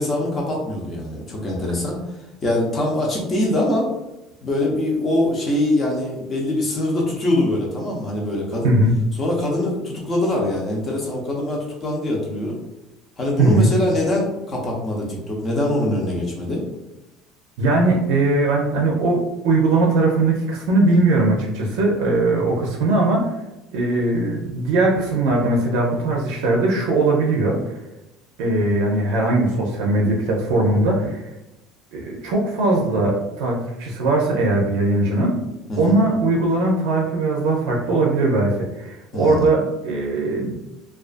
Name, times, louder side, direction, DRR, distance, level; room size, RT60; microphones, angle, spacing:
voice 1, 0.0-2.0 2.4-3.9 4.4-8.7 9.1-12.6 13.2-16.6 35.7-36.0 39.1-39.5, left 1 dB, 25° left, -2 dB, 0.5 m, -23 dB
voice 2, 8.6-9.0 13.4-13.7 17.6-23.3 23.7-27.7 28.4-31.2 31.9-35.4 35.8-40.6, right 2 dB, 85° right, -1 dB, 0.4 m, -20 dB
2.3 x 2.3 x 2.4 m, 0.96 s
cardioid pair, 165°, 0 cm